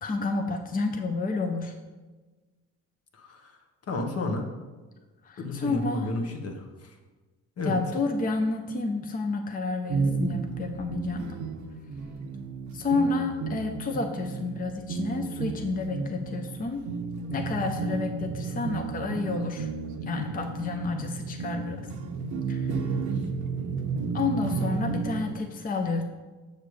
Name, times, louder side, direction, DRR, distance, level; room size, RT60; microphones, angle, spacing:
voice 1, 0.0-1.7 5.2-6.1 7.6-11.4 12.7-16.9 17.3-19.7 20.1-21.9 22.5-22.8 24.1-26.0, left 3 dB, 30° left, 4 dB, 0.6 m, -30 dB
voice 2, 3.1-3.6 3.9-4.5 5.4-6.9 7.6-7.8, left 2 dB, 55° left, 4 dB, 1.2 m, -32 dB
sound 1, 9.9-25.3, right 4 dB, 80° right, 0.6 m, -32 dB
6.8 x 6.6 x 3.2 m, 1.3 s
cardioid pair, 90°, 30 cm